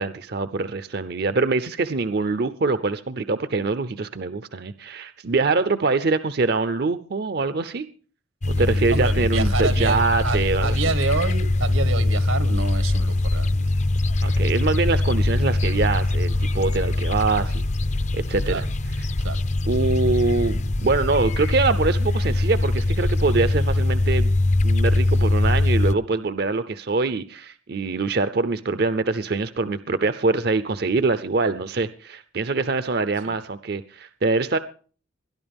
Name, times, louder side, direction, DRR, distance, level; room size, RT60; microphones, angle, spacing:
voice 1, 0.0-7.9 8.5-10.8 14.2-17.6 18.1-18.6 18.9-19.1 19.7-24.3 24.6-34.6, right 3 dB, 50° right, 0.6 m, -24 dB
sound 1, 8.4-25.9, left 2 dB, 35° left, 0.5 m, -22 dB
voice 2, 8.5-13.6 18.5-18.7 19.2-19.4 33.2-33.3, right 3 dB, 85° right, 1.6 m, -28 dB
21.5 x 11.5 x 3.5 m
head